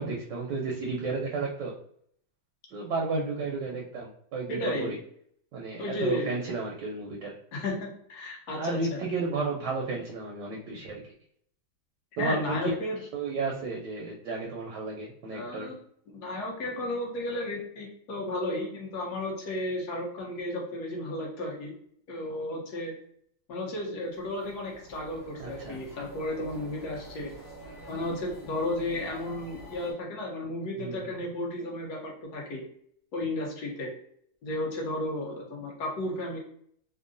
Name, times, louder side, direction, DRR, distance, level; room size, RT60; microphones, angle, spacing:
voice 1, 0.0-1.7 2.7-5.0 5.5-7.4 8.5-11.1 12.2-12.7 13.1-15.7 25.4-25.8 28.0-28.1 30.8-31.2, right 3 dB, 75° right, -2 dB, 1.1 m, -33 dB
voice 2, 4.5-4.9 5.8-6.3 7.5-9.0 12.2-13.0 15.3-15.7 16.1-21.7 22.1-22.9 23.5-27.3 27.9-32.6 33.1-33.9 34.4-36.4, left 1 dB, 60° left, -1 dB, 1.2 m, -33 dB
sound 1, 24.0-29.9, right 1 dB, 45° left, 1.6 m, -47 dB
3.6 x 2.1 x 2.4 m, 0.66 s
omnidirectional pair, 2.1 m